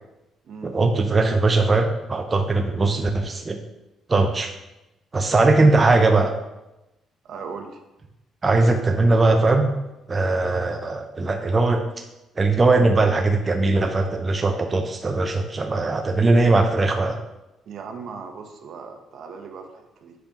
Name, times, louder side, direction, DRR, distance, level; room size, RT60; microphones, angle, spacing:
voice 1, 0.6-3.6 4.1-4.5 5.1-6.3 8.4-9.7 10.1-12.0 12.4-17.2, right 3 dB, 30° right, 4 dB, 0.6 m, -20 dB
voice 2, 7.2-7.8 17.7-20.1, right 5 dB, 65° right, 4 dB, 0.9 m, -38 dB
7.9 x 5.2 x 3.0 m, 0.96 s
cardioid pair, 90°, 0 cm